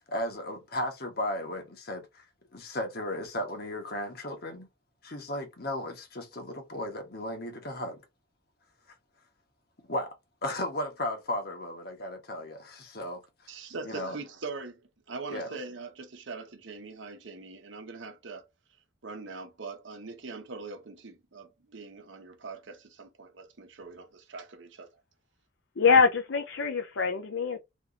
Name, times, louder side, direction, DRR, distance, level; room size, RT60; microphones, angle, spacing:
voice 1, 0.0-2.3 2.5-4.7 5.0-8.0 9.9-10.1 10.4-13.5 13.8-14.1 15.3-15.6, left 1 dB, 55° left, 1.3 m, -35 dB
voice 2, 13.5-14.8 15.1-18.5 19.0-24.9, right 4 dB, 75° right, 0.8 m, -42 dB
voice 3, 25.8-27.6, left 5 dB, 70° left, 0.6 m, -24 dB
3.3 x 3.0 x 2.6 m
head